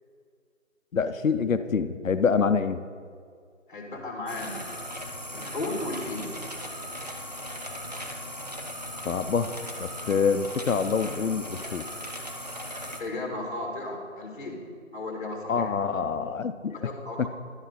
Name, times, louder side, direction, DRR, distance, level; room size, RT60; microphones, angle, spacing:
voice 1, 0.9-2.8 9.0-9.5 9.8-11.8 15.5-16.8 17.2-17.3, left 5 dB, 85° left, 11 dB, 0.7 m, -26 dB
voice 2, 3.7-4.7 5.3-6.3 13.0-15.7 16.7-17.3, left 2 dB, 40° left, -1 dB, 2.0 m, -35 dB
sound 1, 4.3-13.0, equal, 30° right, 0.6 m, -38 dB
11.5 x 7.3 x 4.1 m, 2.2 s
figure-of-eight pair, 170°, 39 cm